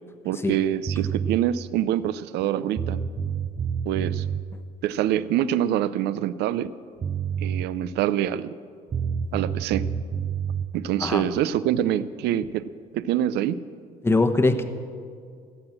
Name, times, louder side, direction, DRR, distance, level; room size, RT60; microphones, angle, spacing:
voice 1, 0.2-3.0 3.9-4.2 4.8-6.7 7.4-8.5 9.3-9.9 10.7-12.7 12.9-13.6, right 11 dB, 80° right, 16 dB, 0.6 m, -25 dB
sound 1, 0.9-1.4 2.4-2.5 2.8-4.4 6.7-6.8 7.0-7.7 8.9-10.7, right 7 dB, 30° right, 0.7 m, -28 dB
voice 2, 14.0-14.6, left 2 dB, 15° left, 8 dB, 0.9 m, -22 dB
16.5 x 7.9 x 7.6 m, 2.2 s
cardioid pair, 110°, 17 cm